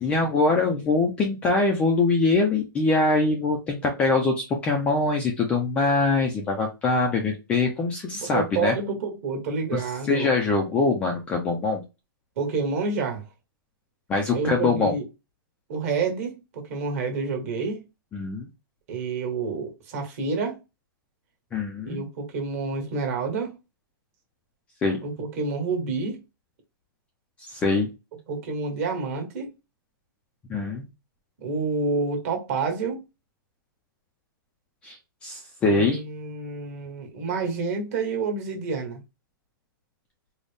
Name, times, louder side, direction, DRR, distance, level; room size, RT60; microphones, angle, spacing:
voice 1, 0.0-8.7 9.7-9.8 10.1-11.8 14.1-15.0 18.1-18.5 21.5-22.0 24.8-25.0 27.5-27.9 30.5-30.8 34.8-36.0, left 3 dB, 10° left, 0.3 m, -23 dB
voice 2, 8.1-10.3 12.4-13.3 14.3-15.1 15.7-17.8 18.9-20.6 21.8-23.6 25.0-26.2 28.3-29.5 31.4-33.0 35.6-39.0, right 4 dB, 40° right, 1.2 m, -28 dB
3.9 x 2.0 x 3.3 m
hypercardioid pair, 170°, 12 cm